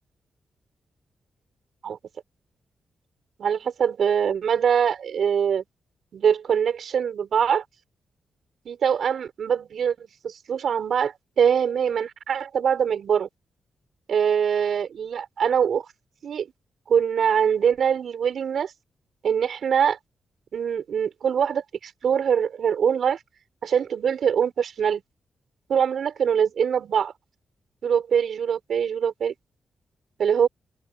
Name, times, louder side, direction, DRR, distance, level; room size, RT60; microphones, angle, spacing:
voice 1, 3.4-5.6 6.1-7.6 8.7-13.3 14.1-15.8 16.2-16.5 16.9-18.7 19.2-20.0 20.5-23.2 23.6-25.0 25.7-27.1 27.8-29.3 30.2-30.5, right 7 dB, 65° right, 5.9 m, -23 dB
cardioid pair, 100°, 0 cm